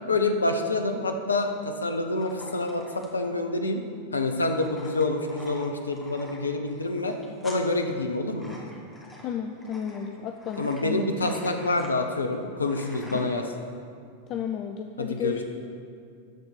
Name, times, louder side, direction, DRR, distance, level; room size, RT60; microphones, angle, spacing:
voice 1, 0.1-3.8 4.1-7.1 7.4-8.5 10.6-13.5 15.0-15.4, left 2 dB, 75° left, 5 dB, 0.8 m, -27 dB
sound 1, 2.2-13.5, left 1 dB, 10° left, 1.7 m, -47 dB
voice 2, 9.2-11.3 14.3-15.4, left 7 dB, 35° left, 5 dB, 0.5 m, -33 dB
13.0 x 4.3 x 6.7 m, 2.3 s
figure-of-eight pair, 90°, 0 cm